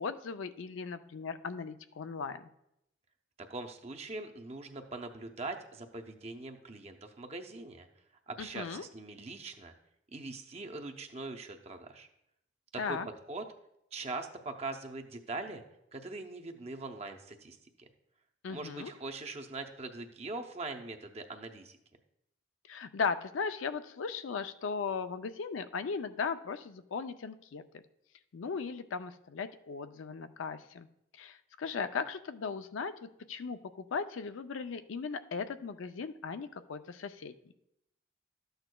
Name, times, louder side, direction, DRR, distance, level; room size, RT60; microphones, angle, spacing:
voice 1, 0.0-2.5 8.4-8.8 12.8-13.1 18.4-18.9 22.7-27.6 28.3-30.9 31.2-37.3, left 5 dB, 90° left, 10 dB, 0.5 m, -37 dB
voice 2, 3.5-7.9 8.3-9.7 10.1-12.1 12.7-13.0 13.3-13.4 13.9-15.6 15.9-17.9 18.5-21.8, right 3 dB, 30° right, 4 dB, 0.6 m, -42 dB
12.5 x 7.9 x 2.3 m, 0.81 s
head